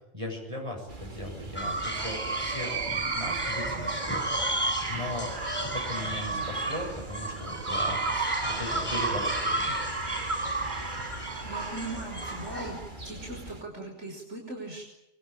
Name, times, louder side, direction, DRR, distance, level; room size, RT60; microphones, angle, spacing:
voice 1, 0.1-4.6 4.9-5.3 5.7-9.8, left 1 dB, 25° right, 0 dB, 7.6 m, -38 dB
sound 1, 0.9-13.6, right 2 dB, 40° right, 2.4 m, -39 dB
sound 2, 1.6-12.9, right 2 dB, 20° left, 8.0 m, -32 dB
voice 2, 11.1-12.8 13.0-14.9, right 2 dB, 65° right, 1 dB, 5.7 m, -39 dB
25.0 x 24.5 x 8.9 m, 0.86 s
omnidirectional pair, 1.3 m